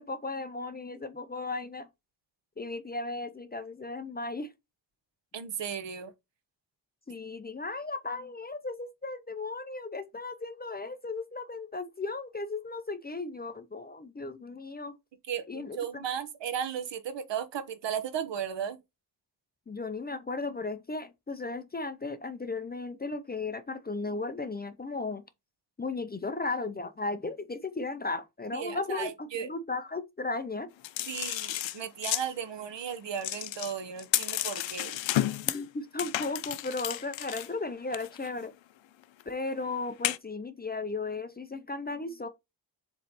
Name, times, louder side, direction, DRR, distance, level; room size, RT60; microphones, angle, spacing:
voice 1, 0.0-1.9 2.6-4.5 7.1-14.9 15.5-16.1 19.7-25.2 25.8-30.7 35.5-38.5 39.3-42.3, left 3 dB, 20° left, 0.5 m, -36 dB
voice 2, 5.3-6.1 15.3-18.8 28.5-29.5 31.1-35.0, right 8 dB, 70° right, 1.1 m, -35 dB
sound 1, 30.8-32.3 33.2-35.7 36.0-37.5 37.9-38.3 39.0-39.2 40.0-40.2, left 13 dB, 80° left, 0.6 m, -32 dB
7.2 x 3.2 x 4.1 m
wide cardioid pair, 140°, 44 cm